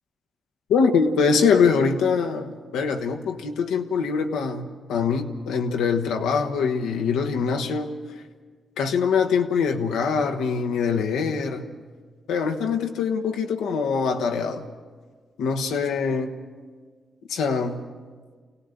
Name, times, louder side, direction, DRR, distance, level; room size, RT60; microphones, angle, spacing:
voice 1, 0.7-8.0 8.8-11.6 12.3-14.7 15.4-16.3 17.3-17.8, left 5 dB, 85° left, 4 dB, 1.1 m, -23 dB
26.0 x 17.5 x 6.7 m, 1.5 s
supercardioid pair, 40°, 0 cm